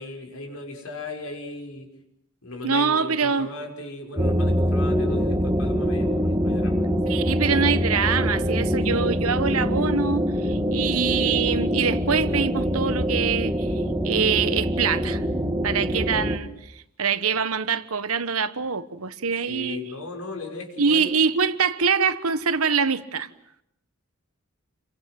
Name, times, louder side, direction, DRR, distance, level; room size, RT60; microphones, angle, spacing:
voice 1, 0.0-1.9 2.4-6.8 19.5-21.1, left 2 dB, 85° left, 5.8 m, -36 dB
voice 2, 2.6-3.5 7.0-15.2 15.6-19.8 20.8-23.3, right 6 dB, 85° right, 1.3 m, -24 dB
sound 1, 4.2-16.4, equal, 15° right, 1.5 m, -24 dB
29.0 x 24.0 x 7.8 m
head